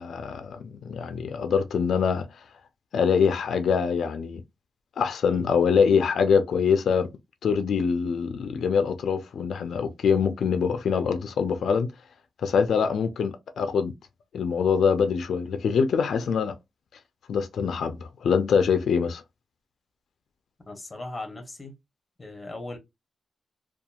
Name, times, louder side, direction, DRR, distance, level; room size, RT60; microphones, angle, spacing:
voice 1, 0.0-2.3 2.9-4.4 5.0-7.1 7.4-11.9 12.4-13.9 14.3-16.5 17.3-19.2, left 6 dB, 90° left, 0.4 m, -24 dB
voice 2, 20.7-21.8 22.2-22.8, left 2 dB, 20° left, 0.8 m, -38 dB
2.8 x 2.3 x 2.3 m
wide cardioid pair, 150°, 0 cm